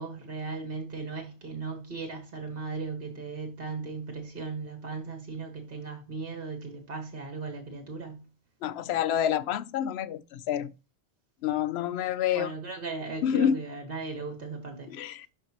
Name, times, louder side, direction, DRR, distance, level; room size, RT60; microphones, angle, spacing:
voice 1, 0.0-8.2 12.3-14.9, right 4 dB, 55° right, 1.8 m, -37 dB
voice 2, 8.6-10.7 11.4-12.5 13.2-13.6 14.9-15.3, left 9 dB, 75° left, 0.8 m, -28 dB
12.0 x 4.5 x 3.0 m
omnidirectional pair, 1.1 m